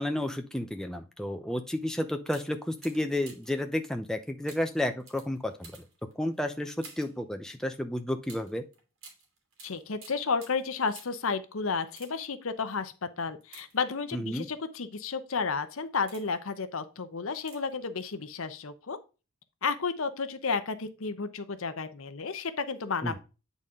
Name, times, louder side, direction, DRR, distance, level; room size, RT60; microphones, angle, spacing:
voice 1, 0.0-5.9 6.2-8.6 14.1-14.5 23.0-23.2, left 1 dB, 5° left, 5 dB, 0.6 m, -32 dB
sound 1, 1.7-1.9 2.2-3.6 4.4-7.2 8.2-11.3 11.8-12.4 13.4-14.2 14.9-15.2 15.7-16.5 17.4-17.8 18.1-18.2, right 4 dB, 65° right, 2.7 m, -53 dB
voice 2, 9.6-19.0 19.6-23.2, left 5 dB, 70° left, 11 dB, 0.8 m, -32 dB
8.6 x 4.1 x 3.6 m, 0.31 s
head